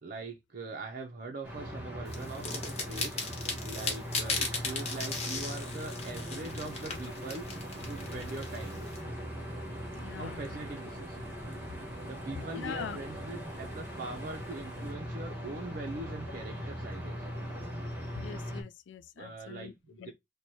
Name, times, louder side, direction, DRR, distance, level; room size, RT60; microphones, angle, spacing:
voice 1, 0.0-7.5 7.8-8.9 10.1-11.2 12.0-17.3 19.2-20.1, right 2 dB, 50° right, 0.5 m, -42 dB
sound 1, 1.4-18.6, equal, 10° right, 1.2 m, -40 dB
sound 2, 2.1-9.0, left 4 dB, 35° left, 1.1 m, -37 dB
sound 3, 5.0-14.9, equal, 15° left, 0.9 m, -56 dB
voice 2, 9.9-10.4 12.5-13.0 18.1-20.1, left 7 dB, 75° left, 0.3 m, -42 dB
4.5 x 2.2 x 2.6 m
head